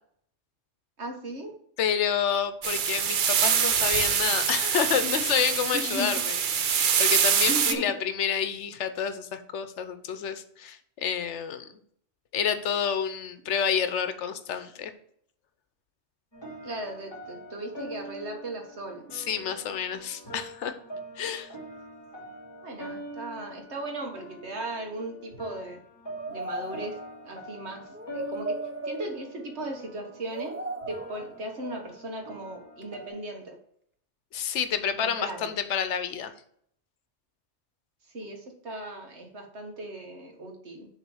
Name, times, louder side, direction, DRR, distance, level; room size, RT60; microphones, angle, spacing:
voice 1, 1.0-1.5 5.7-6.1 7.5-7.9 16.6-19.0 22.6-25.8 26.3-27.0 27.2-27.8 28.1-28.6 28.8-30.6 30.9-33.6 35.0-35.5 38.1-40.9, right 1 dB, 70° right, 3 dB, 1.6 m, -37 dB
voice 2, 1.8-6.7 7.0-11.7 12.3-14.9 19.1-20.8 21.2-21.5 34.3-36.3, left 8 dB, 80° left, 11 dB, 1.0 m, -29 dB
sound 1, 2.6-7.7, right 7 dB, 55° right, 0.7 m, -25 dB
sound 2, 16.3-33.1, right 1 dB, 20° left, 2.5 m, -44 dB
sound 3, 26.2-27.3 27.9-29.6 30.2-31.5 32.8-32.9, right 2 dB, 15° right, 0.4 m, -36 dB
7.1 x 3.7 x 6.3 m, 0.66 s
omnidirectional pair, 1.2 m